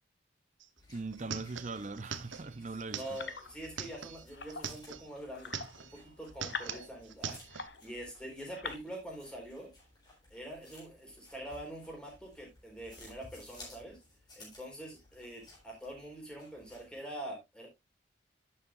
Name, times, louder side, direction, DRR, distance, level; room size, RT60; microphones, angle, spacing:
sound 1, 0.6-0.7 0.9-5.1 5.4-6.0 6.3-7.7, right 7 dB, 85° right, 1.0 m, -42 dB
sound 2, 0.8-17.0, left 2 dB, 20° left, 4.0 m, -58 dB
voice 1, 0.9-3.0, right 3 dB, 40° right, 0.7 m, -40 dB
voice 2, 2.9-9.7 10.3-14.0 14.4-17.7, right 1 dB, 5° left, 4.3 m, -45 dB
sound 3, 3.0-3.8 4.3-4.8 5.3-8.0 8.4-8.8, left 5 dB, 65° left, 1.0 m, -45 dB
11.0 x 7.9 x 2.5 m
head